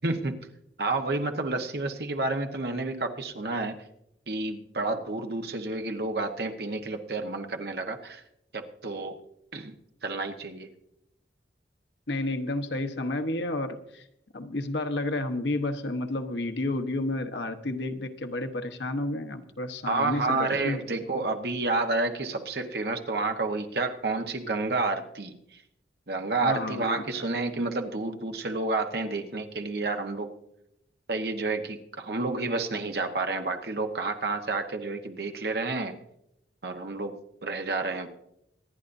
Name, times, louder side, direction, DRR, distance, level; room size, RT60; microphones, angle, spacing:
voice 1, 0.0-0.4 0.8-3.7 4.3-8.2 8.5-9.2 9.5-9.7 10.0-10.7 19.9-25.3 26.1-30.3 31.1-35.9 36.6-38.1, right 3 dB, 60° right, 5 dB, 1.2 m, -30 dB
voice 2, 12.1-14.0 14.3-20.8 26.4-27.3, left 2 dB, 85° left, 7 dB, 1.1 m, -31 dB
25.0 x 10.0 x 2.7 m, 0.79 s
head